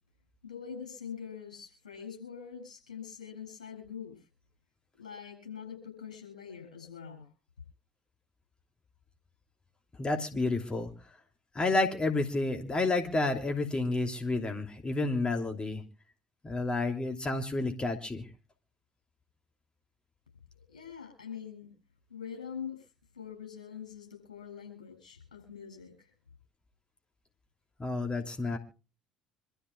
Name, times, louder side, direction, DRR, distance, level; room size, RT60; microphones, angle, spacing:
voice 1, 0.4-4.2 5.0-7.3 20.5-21.7 22.1-22.9 23.1-26.1, left 7 dB, 85° left, 3 dB, 7.4 m, -44 dB
voice 2, 10.0-10.9 11.5-15.8 16.4-18.3 27.8-28.6, left 2 dB, 25° left, 5 dB, 2.9 m, -30 dB
26.5 x 13.5 x 2.4 m, 0.33 s
figure-of-eight pair, 60°, 4 cm